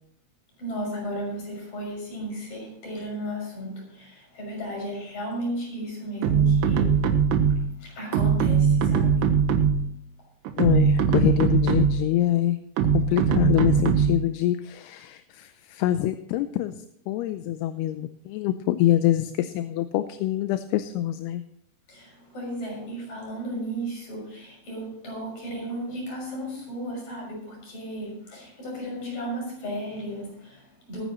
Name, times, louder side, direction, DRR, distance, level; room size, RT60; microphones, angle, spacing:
voice 1, 0.6-7.2 7.5-9.4 21.9-31.0, equal, 45° left, -2 dB, 7.6 m, -34 dB
sound 1, 6.2-7.8 8.1-9.9 10.5-12.1 12.8-14.3, right 6 dB, 85° right, 3.3 m, -21 dB
voice 2, 10.6-12.6 12.9-16.8 17.1-21.4, left 13 dB, 80° left, 10 dB, 2.5 m, -25 dB
22.0 x 9.7 x 3.1 m, 0.72 s
omnidirectional pair, 4.8 m